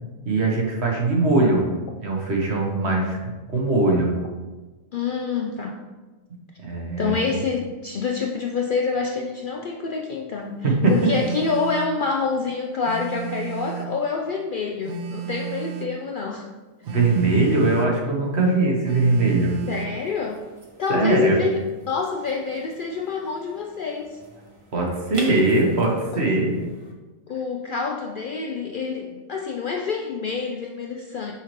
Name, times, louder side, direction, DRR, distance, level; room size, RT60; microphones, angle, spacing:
voice 1, 0.2-1.6 2.0-4.1 6.6-7.4 10.6-11.1 16.9-19.6 20.9-21.4 24.7-26.5, right 2 dB, 55° right, 0 dB, 1.3 m, -21 dB
voice 2, 4.9-5.8 7.0-16.5 19.7-20.4 20.8-24.2 26.1-26.2 27.3-31.3, left 5 dB, 85° left, 1 dB, 0.4 m, -27 dB
Telephone, 10.8-12.0 12.8-14.0 14.8-16.0 16.8-18.0 18.8-20.0, right 8 dB, 85° right, 1.1 m, -33 dB
sound 1, 19.2-26.9, right 2 dB, 30° right, 0.6 m, -45 dB
5.8 x 5.7 x 3.0 m, 1.2 s
omnidirectional pair, 1.4 m